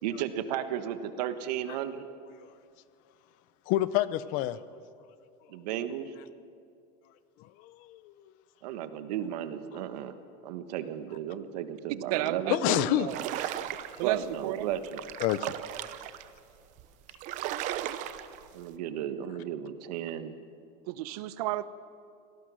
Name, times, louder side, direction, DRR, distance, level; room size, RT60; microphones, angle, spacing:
voice 1, 0.0-2.0 5.5-6.1 8.6-10.2 10.4-12.9 14.0-15.0 18.5-20.4, right 10 dB, 80° right, 10 dB, 1.5 m, -34 dB
voice 2, 3.7-4.6 7.6-8.1 12.5-13.5 15.2-15.5, left 14 dB, 40° left, 16 dB, 0.6 m, -28 dB
voice 3, 12.1-13.2 14.0-14.2 14.4-14.7 20.9-21.6, right 15 dB, 65° right, 15 dB, 0.8 m, -32 dB
sound 1, 13.1-14.1 14.7-16.3 16.8-16.9 17.1-18.5, right 12 dB, 35° right, 0.8 m, -36 dB
25.5 x 18.0 x 6.3 m, 2.4 s
supercardioid pair, 175°, 21 cm